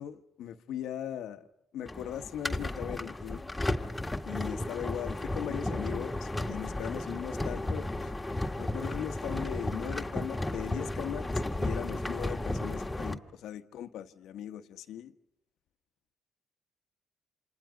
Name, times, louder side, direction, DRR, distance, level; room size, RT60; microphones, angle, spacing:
voice 1, 0.0-1.5 1.7-3.5 4.2-8.1 8.6-15.1, left 10 dB, 85° left, 1.3 m, -39 dB
sound 1, 1.9-13.2, left 1 dB, 10° left, 1.8 m, -34 dB
29.0 x 27.5 x 5.1 m
cardioid pair, 90°, 0 cm